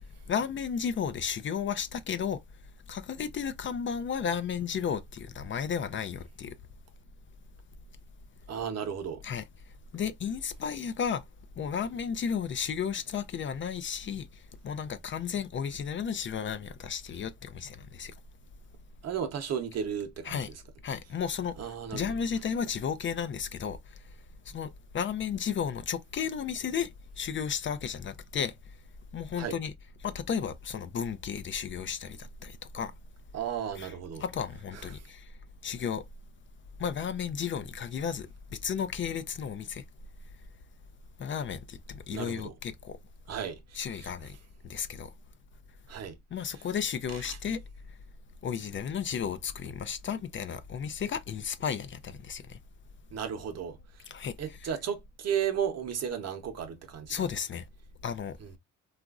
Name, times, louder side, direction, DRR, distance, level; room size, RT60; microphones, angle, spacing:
voice 1, 0.3-2.4 2.9-6.5 9.2-9.4 9.9-11.2 11.6-14.3 14.6-18.1 20.2-20.5 20.8-23.8 24.5-26.9 27.2-28.5 29.1-29.7 30.0-32.9 33.8-35.2 35.6-36.0 36.8-38.3 38.6-39.8 41.2-43.0 43.7-44.4 44.6-45.1 46.3-47.6 48.4-52.6 54.1-54.7 57.1-57.6 58.0-58.4, left 7 dB, 40° left, 0.4 m, -33 dB
voice 2, 8.5-9.2 19.0-20.4 21.6-22.1 29.4-29.5 33.3-34.2 34.7-34.9 42.1-42.5 43.3-44.1 45.9-46.2 47.3-47.4 53.1-54.1 54.4-57.1, right 8 dB, 55° right, 0.8 m, -34 dB
2.9 x 2.4 x 2.3 m
cardioid pair, 90°, 31 cm